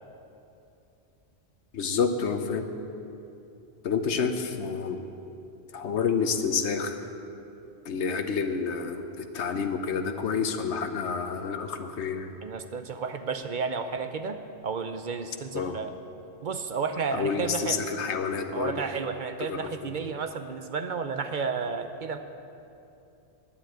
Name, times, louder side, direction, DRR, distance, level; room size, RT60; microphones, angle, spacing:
voice 1, 1.7-2.7 3.8-5.0 5.7-7.0 7.8-12.3 15.5-15.7 17.1-18.8 19.5-20.0, left 5 dB, 85° left, 7 dB, 1.2 m, -29 dB
voice 2, 12.4-15.9 16.4-17.8 18.5-22.2, right 5 dB, 55° right, 8 dB, 0.7 m, -32 dB
9.9 x 9.2 x 9.0 m, 2.8 s
omnidirectional pair, 1.1 m